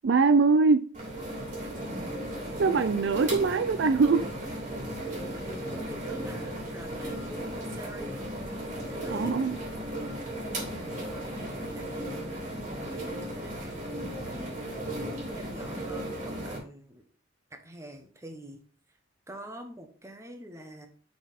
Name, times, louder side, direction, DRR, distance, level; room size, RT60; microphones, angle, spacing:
voice 1, 0.0-0.9 2.6-4.3 9.1-9.6, right 4 dB, 60° right, 0.4 m, -22 dB
sound 1, 0.9-16.6, right 1 dB, 40° right, 2.6 m, -36 dB
voice 2, 5.4-8.2 8.9-9.3 10.7-12.4 12.9-14.5 15.0-17.0 17.5-18.6 19.3-20.9, equal, 15° right, 1.1 m, -46 dB
6.2 x 5.7 x 4.2 m
head